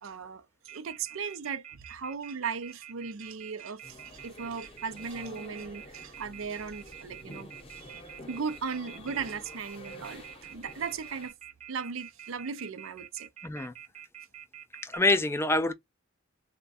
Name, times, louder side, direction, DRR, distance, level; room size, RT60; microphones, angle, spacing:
voice 1, 0.0-7.5 7.8-8.0 8.3-11.3 11.7-13.3, right 5 dB, 85° right, 0.5 m, -37 dB
Telephone, 0.7-15.0, right 10 dB, 35° right, 0.7 m, -47 dB
sound 1, 3.8-11.3, left 1 dB, 30° left, 0.8 m, -49 dB
voice 2, 13.4-13.7 14.8-15.7, left 2 dB, 15° left, 0.3 m, -26 dB
3.4 x 2.2 x 4.0 m
head